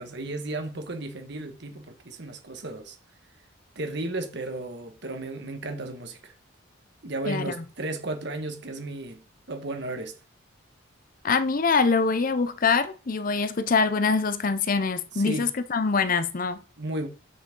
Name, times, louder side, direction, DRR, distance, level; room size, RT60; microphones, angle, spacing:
voice 1, 0.0-3.0 3.7-6.3 7.0-10.1 15.1-15.5 16.8-17.1, right 2 dB, 55° right, 1.5 m, -34 dB
voice 2, 11.2-16.6, left 4 dB, 45° left, 0.6 m, -24 dB
8.2 x 6.4 x 3.7 m
head